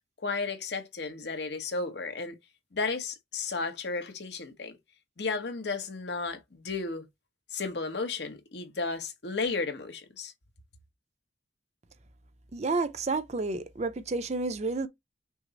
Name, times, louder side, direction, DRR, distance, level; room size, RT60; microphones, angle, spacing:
voice 1, 0.2-2.4 2.7-4.8 5.2-7.1 7.5-10.3, left 4 dB, 70° left, 1.0 m, -33 dB
voice 2, 12.5-14.9, right 3 dB, 40° right, 0.6 m, -30 dB
6.1 x 2.1 x 3.9 m
head